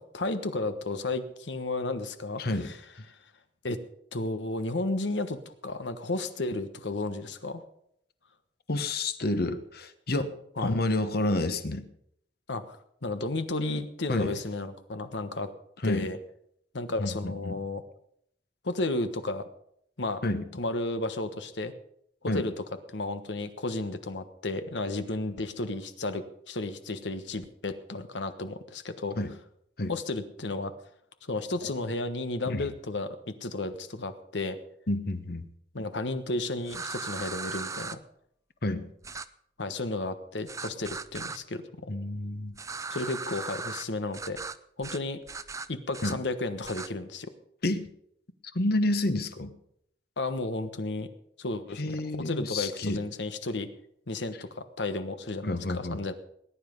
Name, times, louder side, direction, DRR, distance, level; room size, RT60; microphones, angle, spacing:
voice 1, 0.0-2.8 3.1-3.2 3.6-3.8 4.1-7.6 10.6-10.7 12.5-15.5 15.8-16.2 16.7-17.8 18.6-19.5 20.0-20.2 20.6-21.7 22.2-29.2 29.9-30.7 31.2-34.6 35.7-38.0 39.6-41.9 42.9-44.4 44.8-45.2 45.7-47.3 50.2-51.1 51.4-53.7 54.1-56.1, left 2 dB, 85° left, 10 dB, 1.3 m, -33 dB
voice 2, 8.7-11.8 14.1-14.4 15.8-16.1 17.0-17.6 20.2-20.4 22.3-22.5 29.2-29.3 29.8-29.9 32.5-32.6 34.9-35.5 38.6-38.9 41.9-42.6 46.0-46.2 47.6-47.9 48.5-49.5 51.8-53.0 55.4-56.0, left 2 dB, 60° left, 10 dB, 1.2 m, -29 dB
sound 1, 36.7-38.0 39.0-39.3 40.5-41.4 42.5-43.8 44.1-44.6 44.8-45.0 45.3-46.1 46.6-46.9, right 4 dB, 20° right, 0.5 m, -37 dB
19.5 x 10.0 x 5.4 m, 0.72 s
head